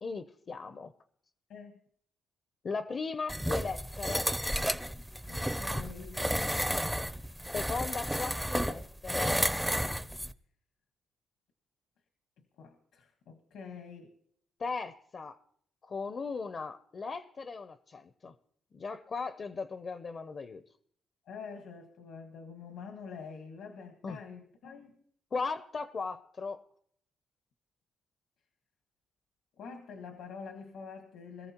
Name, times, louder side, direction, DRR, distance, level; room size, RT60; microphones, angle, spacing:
voice 1, 0.0-0.9 2.6-4.3 7.5-9.4 14.6-15.4 15.8-18.3 18.7-20.6 24.0-24.2 25.3-26.6, left 4 dB, 45° left, 0.6 m, -37 dB
sound 1, 3.3-10.3, equal, ahead, 0.5 m, -32 dB
voice 2, 5.3-6.3 12.6-14.1 21.3-25.0 29.6-31.5, left 5 dB, 80° left, 1.4 m, -46 dB
21.5 x 14.0 x 2.9 m
cardioid pair, 90°, 0 cm